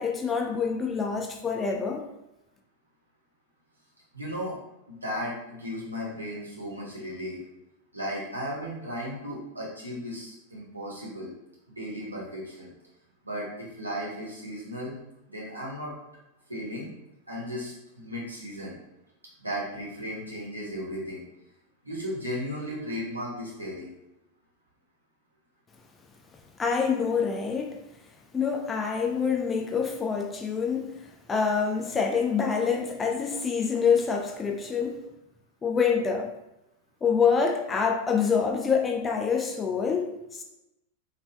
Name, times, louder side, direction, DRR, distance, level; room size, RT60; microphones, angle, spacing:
voice 1, 0.0-2.0 26.6-27.8 28.3-35.0 35.6-36.3 37.0-40.4, left 6 dB, 20° left, 1 dB, 0.3 m, -26 dB
voice 2, 4.1-4.6 4.9-7.4 7.9-11.3 11.7-12.7 13.2-14.9 15.3-15.9 16.5-16.9 17.3-18.8 19.4-21.2 21.8-23.9, equal, 85° right, -6 dB, 0.9 m, -35 dB
3.0 x 2.5 x 2.3 m, 0.91 s
figure-of-eight pair, 90°, 0 cm